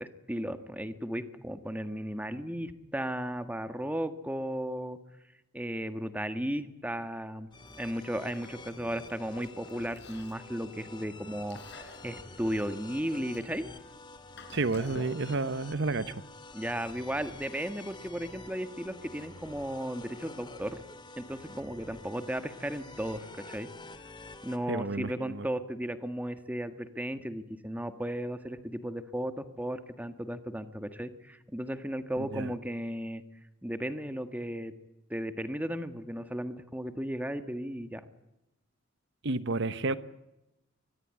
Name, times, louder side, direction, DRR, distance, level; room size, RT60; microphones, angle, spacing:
voice 1, 0.0-5.0 5.5-7.5 7.8-13.7 16.5-20.8 21.2-23.7 24.4-33.2 33.6-34.7 35.1-38.0, equal, 10° right, 10 dB, 1.6 m, -35 dB
Chewing mastication, 7.5-15.5, left 1 dB, 60° left, 5.2 m, -52 dB
sound 1, 7.5-24.6, left 2 dB, 25° left, 2.4 m, -48 dB
voice 2, 14.5-16.1 24.7-25.5 32.3-32.5 39.2-40.0, right 3 dB, 60° right, 14 dB, 1.0 m, -30 dB
24.0 x 20.0 x 9.9 m, 0.94 s
head